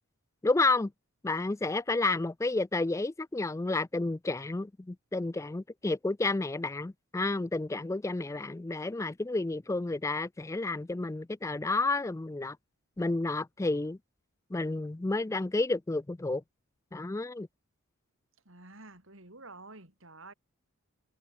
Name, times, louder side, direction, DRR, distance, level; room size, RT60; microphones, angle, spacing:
voice 1, 0.4-0.9 1.2-12.6 13.0-14.0 14.5-16.4 16.9-17.5, left 2 dB, 15° left, 0.3 m, -31 dB
voice 2, 18.4-20.3, right 2 dB, 60° right, 6.2 m, -50 dB
head